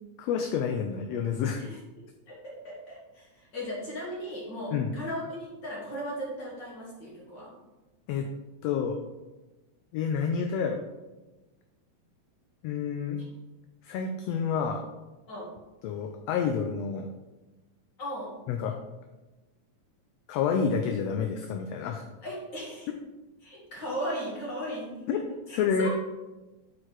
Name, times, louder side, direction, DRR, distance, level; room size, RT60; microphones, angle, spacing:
voice 1, 0.2-1.6 4.7-5.0 8.1-8.3 8.6-9.0 9.9-10.8 12.6-13.2 13.8-14.8 15.8-17.1 18.5-18.8 20.3-22.0 25.1-25.2 25.5-25.9, left 6 dB, 75° left, 4 dB, 1.5 m, -29 dB
voice 2, 2.3-7.5 15.3-15.5 18.0-18.3 22.2-22.9 23.4-25.1 25.5-25.9, equal, 40° left, -5 dB, 2.4 m, -37 dB
8.4 x 4.5 x 4.5 m, 1.1 s
omnidirectional pair, 3.4 m